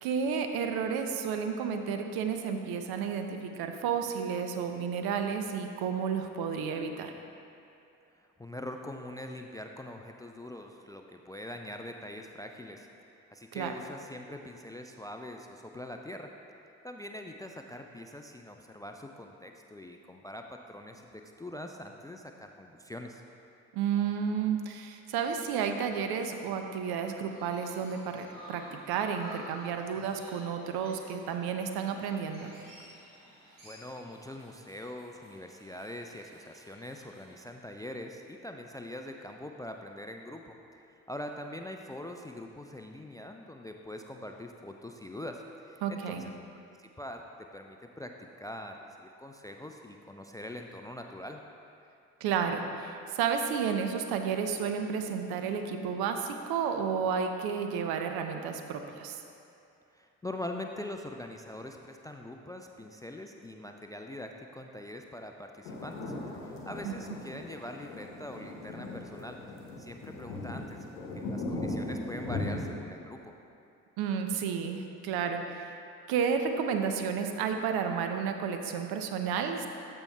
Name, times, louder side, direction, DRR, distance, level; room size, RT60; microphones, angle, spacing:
voice 1, 0.0-7.1 13.5-13.7 23.7-32.5 45.8-46.3 52.2-59.2 66.8-66.9 74.0-75.7 76.1-79.7, right 6 dB, 65° right, 6 dB, 0.7 m, -31 dB
voice 2, 8.2-12.9 13.3-16.3 16.8-23.2 33.6-40.8 41.1-46.3 46.8-51.4 59.9-73.3, left 1 dB, 10° left, 4 dB, 0.3 m, -43 dB
Chirp tweet, 26.8-37.3, equal, 90° right, 1.4 m, -53 dB
sound 1, 65.7-72.7, left 2 dB, 80° left, 0.9 m, -38 dB
13.5 x 5.4 x 2.3 m, 2.6 s
hypercardioid pair, 40°, 40 cm